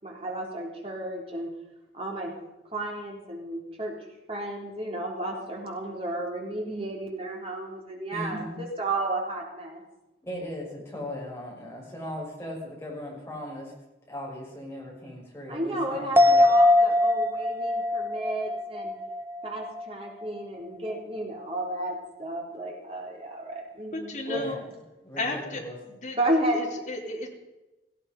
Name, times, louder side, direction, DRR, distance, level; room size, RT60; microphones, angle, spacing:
voice 1, 0.0-1.5 1.9-2.3 2.7-3.9 4.3-9.8 15.5-18.9 19.4-24.4 26.2-26.8, right 1 dB, 30° right, -1 dB, 3.4 m, -32 dB
voice 2, 8.1-8.6 10.2-13.7 14.1-16.5 24.3-24.6 25.0-25.8, left 1 dB, 15° left, -4 dB, 6.3 m, -38 dB
sound 1, 16.2-19.9 20.2-20.3, left 2 dB, 10° right, 0.7 m, -22 dB
voice 3, 23.9-24.6 25.2-25.6 25.9-26.2 26.5-27.3, left 2 dB, 45° left, 0 dB, 3.2 m, -33 dB
17.5 x 15.5 x 5.3 m, 1.0 s
head